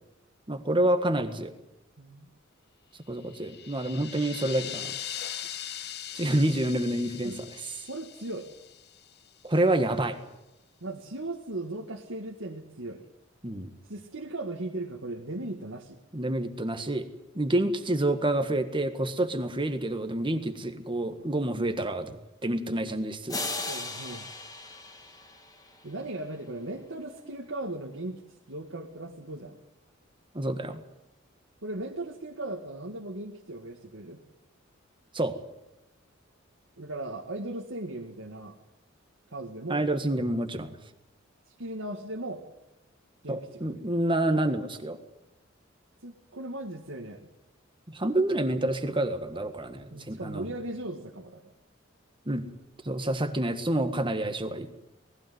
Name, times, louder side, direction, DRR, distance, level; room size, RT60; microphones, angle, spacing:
voice 1, 0.5-1.5 3.1-4.9 6.1-7.4 9.4-10.2 13.4-13.7 16.1-17.1 17.3-22.2 22.4-23.4 30.3-30.8 35.1-35.4 39.7-40.8 43.3-45.0 47.9-50.4 52.2-52.5 52.8-54.7, right 1 dB, 25° right, 8 dB, 1.6 m, -28 dB
voice 2, 2.0-2.3 7.2-7.4 7.9-8.5 10.8-13.1 13.8-16.0 23.7-24.3 25.8-28.2 28.5-29.6 31.6-34.2 36.8-38.6 39.3-39.9 41.5-42.4 43.2-43.8 46.0-47.3 49.9-51.5, right 2 dB, 70° right, 1 dB, 1.9 m, -37 dB
sound 1, 3.2-9.4, left 10 dB, 55° left, 0.9 m, -40 dB
sound 2, 23.3-26.2, left 2 dB, 20° left, 2.7 m, -37 dB
19.0 x 15.5 x 9.4 m, 0.94 s
head